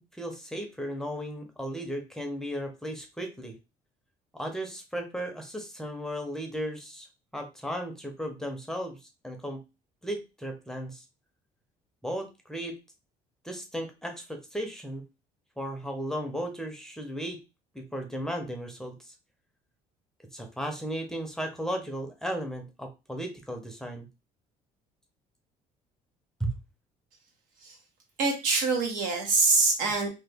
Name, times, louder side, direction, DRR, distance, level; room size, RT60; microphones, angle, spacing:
voice 1, 0.1-3.6 4.3-7.1 7.3-9.6 10.0-11.0 12.0-12.8 13.4-15.0 15.6-17.4 17.7-19.1 20.3-24.1 26.4-26.6, equal, 5° left, 3 dB, 0.6 m, -35 dB
voice 2, 28.2-30.1, right 3 dB, 80° right, 2 dB, 1.1 m, -24 dB
2.9 x 2.3 x 3.4 m, 0.27 s
cardioid pair, 135°, 14 cm